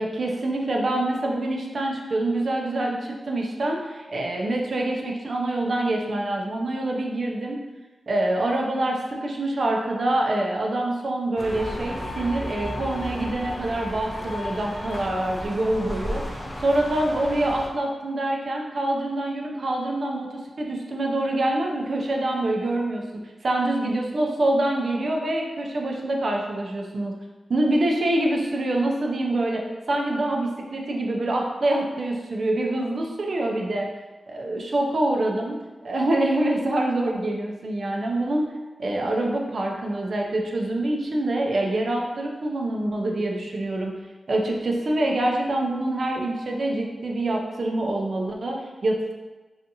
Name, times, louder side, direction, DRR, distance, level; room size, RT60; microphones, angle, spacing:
voice 1, 0.0-7.6 8.1-23.0 23.4-27.1 27.5-33.9 34.3-35.6 35.8-38.4 38.8-43.9 44.3-49.1, right 1 dB, 55° right, 0 dB, 0.4 m, -25 dB
sound 1, 11.4-17.7, left 1 dB, 25° left, 0.4 m, -34 dB
2.7 x 2.4 x 2.5 m, 1.2 s
wide cardioid pair, 95°, 0 cm